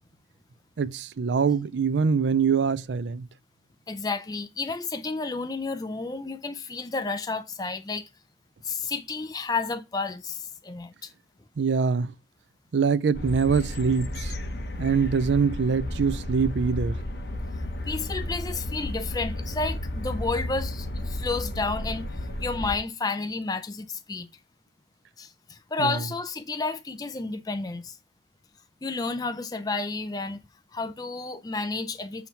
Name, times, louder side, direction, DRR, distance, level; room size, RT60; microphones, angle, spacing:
voice 1, 0.8-3.3 11.6-12.1 12.7-14.3 14.8-16.9 25.8-26.0, right 5 dB, 85° right, 0.4 m, -24 dB
voice 2, 3.9-8.1 8.6-11.1 17.9-22.1 22.4-24.3 25.2-28.0 28.8-30.4 30.7-32.3, left 3 dB, 20° left, 0.4 m, -31 dB
sound 1, 13.1-22.8, left 1 dB, 65° left, 1.1 m, -33 dB
7.1 x 3.0 x 5.7 m
head